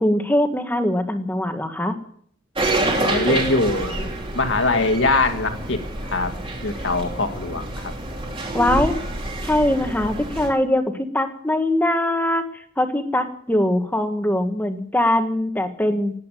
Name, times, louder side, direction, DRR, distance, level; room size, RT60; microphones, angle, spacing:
voice 1, 0.0-1.9 8.5-9.0 9.4-16.1, left 1 dB, 10° left, 6 dB, 1.7 m, -22 dB
sound 1, 2.6-10.5, right 2 dB, 30° right, 3.1 m, -27 dB
voice 2, 3.0-4.1 4.3-6.3 6.6-7.9, left 2 dB, 70° left, 6 dB, 2.1 m, -22 dB
18.5 x 8.5 x 9.2 m, 0.62 s
head